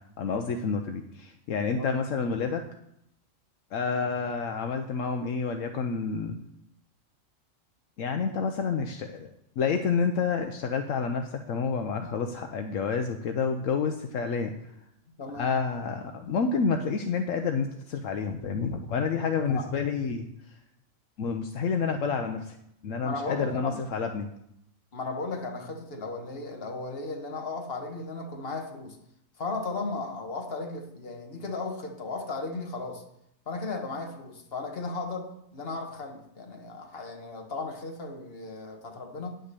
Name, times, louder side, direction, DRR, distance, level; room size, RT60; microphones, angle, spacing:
voice 1, 0.2-2.6 3.7-6.4 8.0-9.3 9.6-14.5 15.3-20.3 21.2-22.6 22.8-24.3, left 5 dB, 75° left, 5 dB, 1.1 m, -29 dB
voice 2, 15.2-15.5 19.5-19.7 23.0-23.8 24.9-29.0 29.4-33.0 33.5-39.4, left 3 dB, 50° left, 3 dB, 1.5 m, -35 dB
9.7 x 6.4 x 6.7 m, 0.78 s
omnidirectional pair, 1.4 m